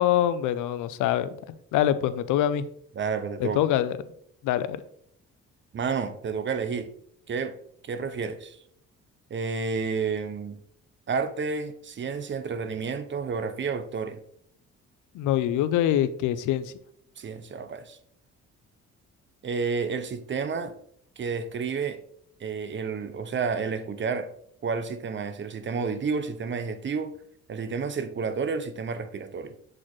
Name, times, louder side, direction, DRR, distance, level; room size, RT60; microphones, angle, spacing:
voice 1, 0.0-2.6 3.4-4.0 4.4-4.8 15.1-16.7, left 11 dB, 85° left, 14 dB, 0.5 m, -24 dB
voice 2, 3.0-3.6 5.7-6.9 7.3-7.5 7.9-8.6 9.3-10.6 11.1-14.2 17.2-18.0 19.4-20.7 21.2-22.0 22.4-24.3 24.6-27.1 27.5-29.5, right 5 dB, 40° right, 10 dB, 0.7 m, -30 dB
7.5 x 4.2 x 3.1 m, 0.67 s
cardioid pair, 90°, 30 cm